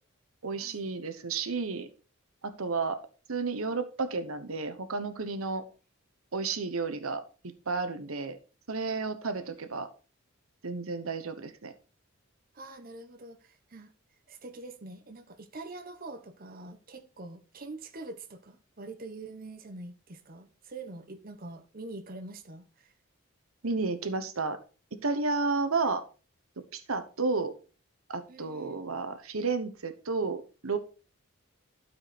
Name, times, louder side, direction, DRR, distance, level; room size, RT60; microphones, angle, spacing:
voice 1, 0.4-1.9 2.4-3.0 3.3-5.6 6.3-7.2 7.7-8.4 8.7-9.9 10.6-11.7 23.6-24.6 24.9-26.0 26.7-27.5 28.1-30.8, right 4 dB, 90° right, 1.1 m, -32 dB
voice 2, 9.4-9.8 12.5-13.9 14.3-22.9 28.3-28.8, right 2 dB, 45° right, 0.9 m, -45 dB
12.5 x 4.9 x 4.2 m
head